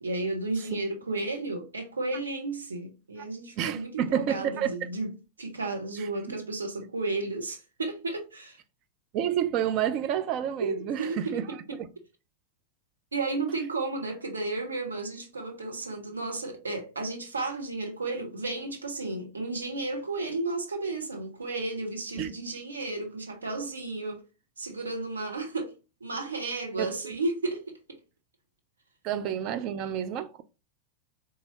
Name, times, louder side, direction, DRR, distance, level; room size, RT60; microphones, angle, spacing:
voice 1, 0.0-5.1 5.4-8.6 10.6-11.8 13.1-24.2 24.6-25.7 26.0-28.0, right 3 dB, 75° right, 0.7 m, -33 dB
voice 2, 3.6-4.9 6.0-6.4 9.1-11.4 22.2-22.3 26.8-27.1 29.0-30.4, right 9 dB, 40° right, 0.4 m, -30 dB
4.0 x 2.4 x 2.9 m
figure-of-eight pair, 90°, 0 cm